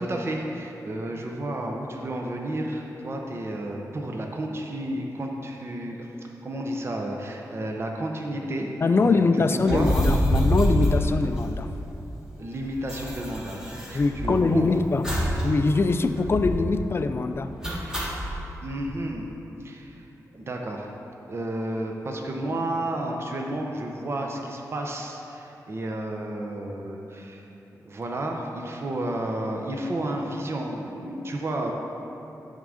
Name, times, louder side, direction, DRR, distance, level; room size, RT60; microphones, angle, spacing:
voice 1, 0.0-8.7 9.0-9.9 12.4-13.6 13.9-14.7 18.6-19.3 19.6-20.1 20.3-20.9 21.3-27.5 27.8-31.7, right 1 dB, 40° right, 1 dB, 0.7 m, -31 dB
voice 2, 8.8-11.7 13.9-15.0 15.4-17.5, left 3 dB, 40° left, 9 dB, 0.3 m, -23 dB
sound 1, 9.6-11.9 12.2-12.3 12.4-14.5 15.0-15.5 15.7-15.8 16.2-16.7 17.6-18.4, equal, 10° right, 1.3 m, -26 dB
9.1 x 3.7 x 6.3 m, 3.0 s
wide cardioid pair, 110°, 7 cm